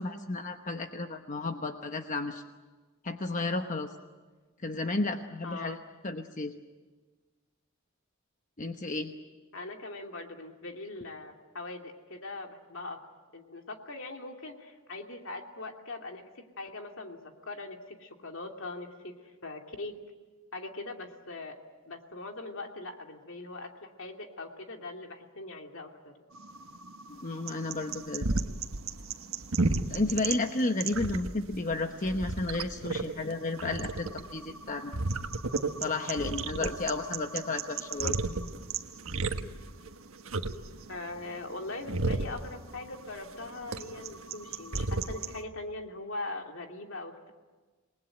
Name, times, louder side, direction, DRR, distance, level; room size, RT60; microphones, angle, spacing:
voice 1, 0.0-2.4 3.0-3.9 4.6-5.8 6.0-6.5 8.6-9.1 27.1-28.3 29.9-34.9 35.8-38.2, left 2 dB, 40° left, 6 dB, 1.1 m, -32 dB
voice 2, 5.4-5.8 9.5-13.0 13.3-17.2 17.4-19.1 19.4-19.9 20.5-21.6 21.9-26.1 40.9-47.3, left 2 dB, 65° left, 3 dB, 2.8 m, -41 dB
sound 1, 26.3-45.4, right 3 dB, 85° right, 1.4 m, -34 dB
28.0 x 20.0 x 9.1 m, 1.3 s
head